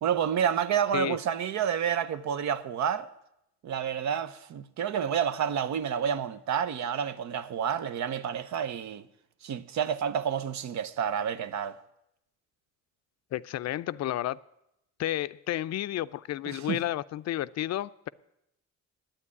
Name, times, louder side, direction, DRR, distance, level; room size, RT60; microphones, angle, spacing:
voice 1, 0.0-3.1 3.6-9.1 9.4-11.8 16.5-16.8, right 8 dB, 65° right, 0.7 m, -29 dB
voice 2, 13.3-14.4 15.0-18.1, left 13 dB, 60° left, 0.4 m, -31 dB
10.0 x 8.8 x 9.6 m
cardioid pair, 90°, 30 cm